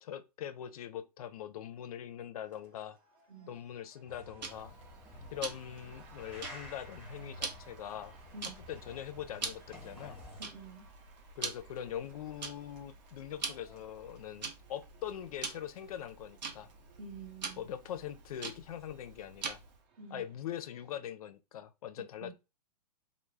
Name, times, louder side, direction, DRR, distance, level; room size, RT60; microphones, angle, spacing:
voice 1, 0.0-3.0 3.5-4.7 5.3-8.1 8.7-10.2 11.4-16.7 17.6-19.6 20.1-22.3, left 10 dB, 60° left, 0.4 m, -42 dB
sound 1, 2.4-21.1, right 5 dB, 40° right, 0.6 m, -62 dB
sound 2, 4.1-10.5, left 1 dB, 5° right, 0.9 m, -51 dB
Tick-tock, 4.4-19.8, right 5 dB, 90° right, 0.7 m, -45 dB
voice 2, 10.4-10.9 17.0-17.7 20.0-20.2 22.2-22.3, right 3 dB, 55° right, 1.0 m, -48 dB
2.2 x 2.0 x 3.2 m
hypercardioid pair, 125°, 21 cm